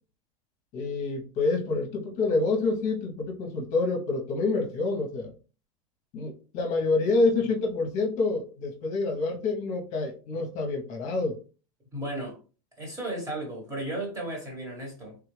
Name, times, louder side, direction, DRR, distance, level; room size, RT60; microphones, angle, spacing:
voice 1, 0.7-5.3 6.1-11.4, left 3 dB, 45° left, 0.8 m, -27 dB
voice 2, 11.9-12.4 12.8-15.2, right 1 dB, 15° right, 1.3 m, -34 dB
3.5 x 2.3 x 3.2 m
supercardioid pair, 140°, 18 cm